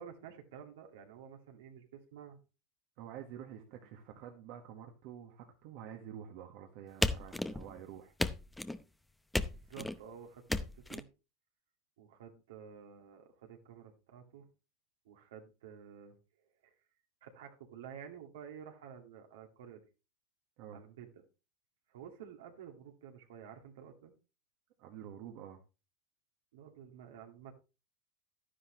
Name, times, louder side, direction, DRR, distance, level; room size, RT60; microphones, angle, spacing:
voice 1, 0.0-2.4 3.7-3.9 9.5-11.1 12.0-14.5 15.0-16.2 16.6-16.7 17.2-19.8 20.7-21.2 21.9-24.1 26.5-27.5, right 8 dB, 80° right, 3 dB, 2.2 m, -51 dB
voice 2, 3.0-8.1 20.6-20.8 24.8-25.6, right 9 dB, 65° right, 3 dB, 1.5 m, -48 dB
sound 1, 7.0-7.8 8.2-8.8 9.3-10.0 10.5-11.0, left 2 dB, 5° left, 0.7 m, -34 dB
11.5 x 9.9 x 3.1 m, 0.30 s
hypercardioid pair, 105°, 0 cm